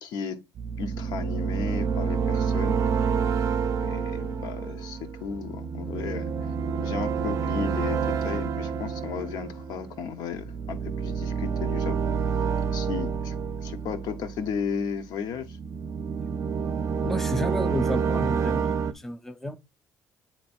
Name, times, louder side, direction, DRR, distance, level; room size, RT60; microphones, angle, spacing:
voice 1, 0.0-0.4 0.8-2.8 3.8-6.5 6.8-12.2 12.7-15.6, left 6 dB, 70° left, 0.9 m, -34 dB
sound 1, 0.6-14.8 15.4-18.9, right 6 dB, 45° right, 0.5 m, -28 dB
voice 2, 17.0-19.6, left 1 dB, 5° left, 0.5 m, -32 dB
8.5 x 3.0 x 4.2 m
cardioid pair, 145°, 7 cm